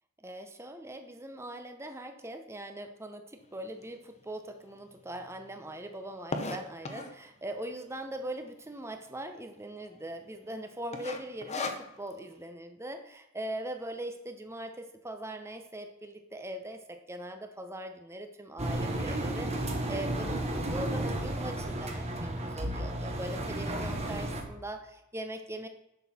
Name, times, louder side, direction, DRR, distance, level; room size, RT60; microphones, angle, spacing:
voice 1, 0.2-25.7, right 1 dB, 10° right, 7 dB, 0.8 m, -41 dB
sound 1, 3.8-3.9 4.5-4.6 4.8-4.9 5.1-7.3 7.9-8.3 8.7-8.8 9.0-9.1 9.6-10.0 10.3-10.5 10.9-12.2, left 3 dB, 30° left, 0.9 m, -36 dB
Engine, 18.6-24.4, right 1 dB, 30° right, 1.3 m, -33 dB
11.0 x 6.4 x 4.3 m, 0.91 s
head